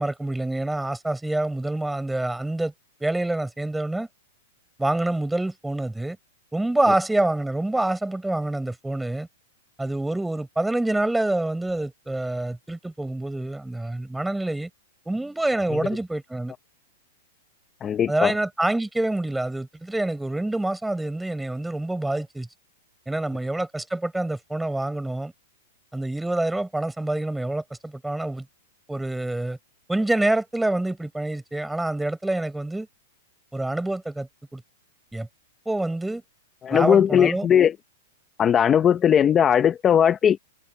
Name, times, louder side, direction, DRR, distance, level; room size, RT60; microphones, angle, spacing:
voice 1, 0.0-2.7 3.0-4.1 4.8-6.2 6.5-9.3 9.8-14.7 15.0-16.5 18.1-22.5 23.1-25.3 25.9-28.5 28.9-29.6 29.9-32.9 33.5-34.6 35.1-35.3 35.6-36.2 36.7-37.5, right 2 dB, 5° right, 6.3 m, -26 dB
voice 2, 17.8-18.3 36.6-37.7 38.4-40.4, left 8 dB, 15° left, 0.7 m, -18 dB
supercardioid pair, 165°, 0 cm